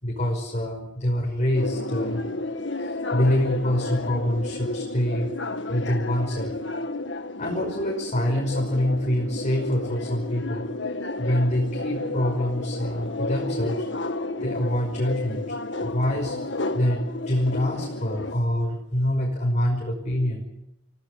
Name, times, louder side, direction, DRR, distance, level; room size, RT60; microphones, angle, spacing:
voice 1, 0.0-2.2 2.8-5.3 5.7-6.5 7.4-10.7 11.2-13.9 14.4-20.4, left 1 dB, 40° left, 0 dB, 5.5 m, -25 dB
sound 1, 1.5-18.4, left 2 dB, 70° left, 1.7 m, -32 dB
30.0 x 17.0 x 8.5 m, 0.84 s
head